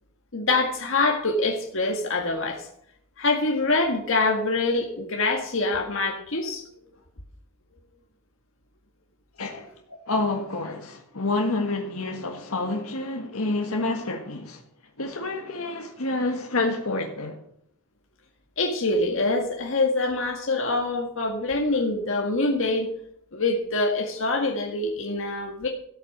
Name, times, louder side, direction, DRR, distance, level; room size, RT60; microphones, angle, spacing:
voice 1, 0.3-2.7 3.2-6.7 18.6-22.9 23.3-25.7, left 2 dB, 65° left, 1.8 m, -25 dB
voice 2, 9.4-9.7 10.1-14.6 15.0-17.4, left 2 dB, 90° left, 1.7 m, -28 dB
13.5 x 8.8 x 6.6 m
head